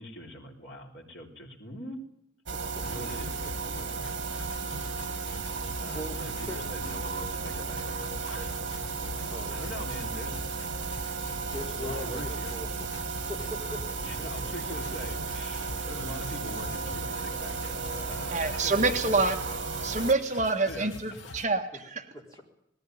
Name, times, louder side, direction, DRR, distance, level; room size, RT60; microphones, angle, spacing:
voice 1, 0.0-2.0 2.8-4.0 5.8-8.5 9.5-10.4 11.7-12.5 14.0-19.3 20.3-21.2, equal, 60° left, 1 dB, 3.8 m, -43 dB
voice 2, 2.5-2.8 5.9-6.6 9.3-9.6 11.5-12.7 13.0-14.7 22.1-22.4, left 1 dB, 15° left, -1 dB, 4.1 m, -41 dB
sound 1, 2.5-20.1, right 4 dB, 75° right, 2.1 m, -34 dB
sound 2, 2.8-21.4, left 2 dB, 75° left, 1.1 m, -46 dB
voice 3, 18.3-19.3 19.8-22.0, right 3 dB, 35° right, 4 dB, 1.5 m, -27 dB
19.5 x 15.0 x 9.4 m, 0.81 s
head